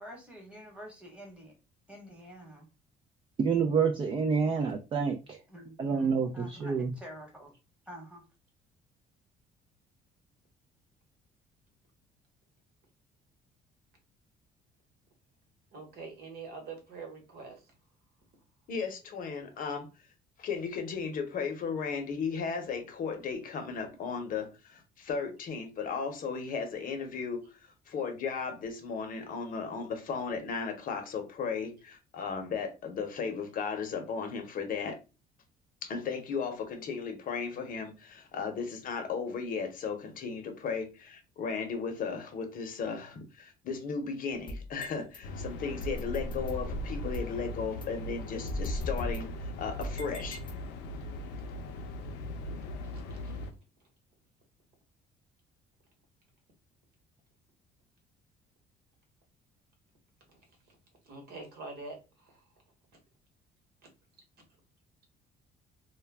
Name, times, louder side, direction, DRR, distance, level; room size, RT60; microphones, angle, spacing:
voice 1, 0.0-1.5 1.9-2.7 5.5-7.5 7.9-8.2, equal, 5° right, 1.2 m, -48 dB
voice 2, 3.4-5.4 5.8-6.9, right 5 dB, 30° right, 0.4 m, -28 dB
voice 3, 15.7-17.7 52.8-53.4 60.3-60.4 61.0-62.4, right 4 dB, 70° right, 1.1 m, -45 dB
voice 4, 18.7-19.9 20.4-27.6 27.9-35.0 35.8-50.4, left 5 dB, 55° left, 0.7 m, -35 dB
sound 1, 44.3-45.2 45.8-47.4 47.8-47.9 48.5-50.9, left 1 dB, 30° left, 0.7 m, -38 dB
sound 2, 45.2-53.5, left 1 dB, 85° left, 0.5 m, -40 dB
2.2 x 2.1 x 3.4 m
cardioid pair, 110°, 17 cm